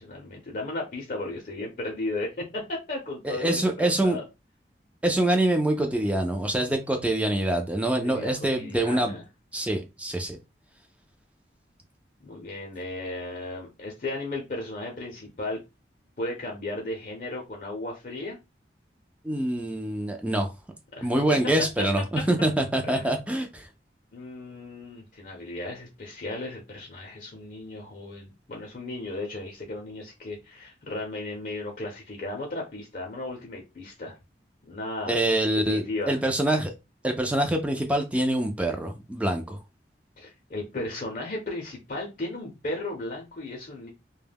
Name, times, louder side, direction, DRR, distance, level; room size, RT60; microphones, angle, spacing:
voice 1, 0.0-4.2 8.0-9.2 12.2-15.6 16.2-18.4 21.0-21.1 22.8-23.1 24.1-34.1 34.6-35.2 35.7-36.2 40.2-43.9, left 2 dB, 50° left, 0.6 m, -35 dB
voice 2, 3.2-4.2 5.0-9.1 9.5-10.4 19.2-20.5 21.0-23.7 35.1-36.7 37.0-39.6, right 1 dB, 5° right, 0.4 m, -25 dB
2.2 x 2.1 x 3.4 m
head